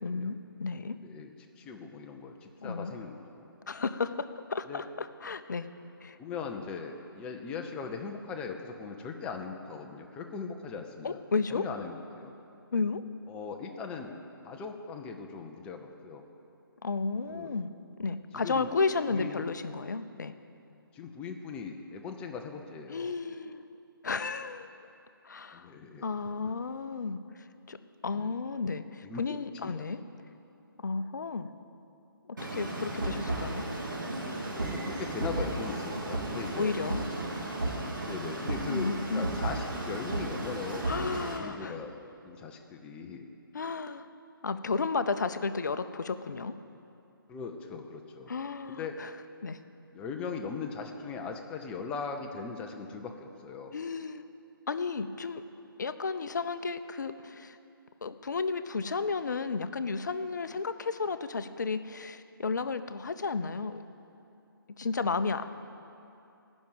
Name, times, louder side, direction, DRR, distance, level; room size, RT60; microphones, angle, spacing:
voice 1, 0.0-1.0 2.6-2.9 3.7-5.6 6.0-6.2 11.0-11.6 12.7-13.0 16.8-17.7 18.0-20.3 22.9-23.7 24.0-24.7 25.2-25.7 26.0-27.8 28.0-30.0 30.8-31.5 32.3-33.6 36.6-37.1 38.7-39.3 40.9-41.8 43.5-44.1 44.4-46.5 48.3-49.1 49.4-49.6 53.7-54.2 54.7-55.4 55.8-57.6 58.0-63.8 64.8-65.5, left 4 dB, 50° left, 11 dB, 0.6 m, -33 dB
voice 2, 1.0-3.5 4.7-4.8 6.2-11.2 11.5-12.3 13.3-14.1 14.4-16.2 17.3-17.5 18.3-18.7 19.1-19.4 20.9-23.1 25.5-26.0 28.1-28.3 29.0-29.8 34.6-36.7 38.0-42.0 42.2-43.3 47.3-48.3 48.7-49.0 49.9-53.7 65.4-65.5, left 5 dB, 10° left, 4 dB, 0.5 m, -39 dB
sound 1, 32.4-41.4, right 2 dB, 55° right, 2.3 m, -34 dB
15.5 x 6.3 x 8.9 m, 2.7 s
figure-of-eight pair, 145°, 12 cm